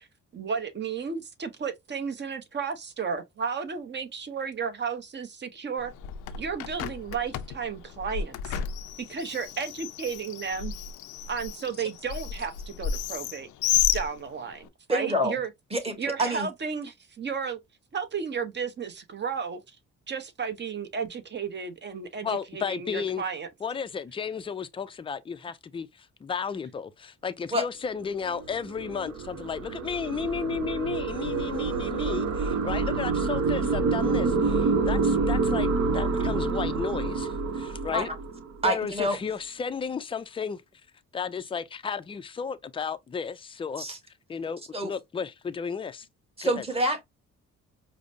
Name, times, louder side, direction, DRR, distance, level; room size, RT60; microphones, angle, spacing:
voice 1, 0.3-5.9 6.4-8.6 9.1-10.7 11.3-13.5 13.9-15.5 16.0-17.6 17.9-19.6 20.1-23.5, right 6 dB, 35° right, 0.8 m, -33 dB
Bird, 5.8-14.7, left 9 dB, 85° left, 0.5 m, -32 dB
voice 2, 14.9-15.4 15.7-16.5 27.5-27.6 37.9-38.1 38.6-39.2 43.8-44.0 44.7-44.9 46.4-47.0, equal, 20° right, 1.3 m, -27 dB
voice 3, 22.2-23.2 23.6-38.1 38.6-40.6 41.1-43.8 44.3-46.1 46.4-46.6, left 6 dB, 20° left, 0.4 m, -33 dB
sound 1, 28.1-38.7, right 4 dB, 65° right, 0.9 m, -27 dB
5.0 x 2.0 x 2.6 m
cardioid pair, 90°, 30 cm